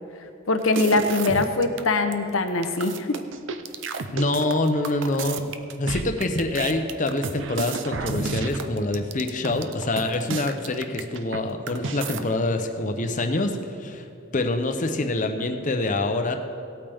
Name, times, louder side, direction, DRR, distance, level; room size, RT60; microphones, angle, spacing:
voice 1, 0.5-3.2, left 2 dB, 80° left, 7 dB, 0.9 m, -22 dB
sound 1, 0.6-1.8 2.1-2.2 2.5-11.4 11.7-12.2, right 4 dB, 60° right, 0.6 m, -32 dB
voice 2, 4.1-5.4 5.8-14.0 14.3-16.4, left 2 dB, 40° left, 6 dB, 0.8 m, -25 dB
17.5 x 8.7 x 3.5 m, 2.6 s
head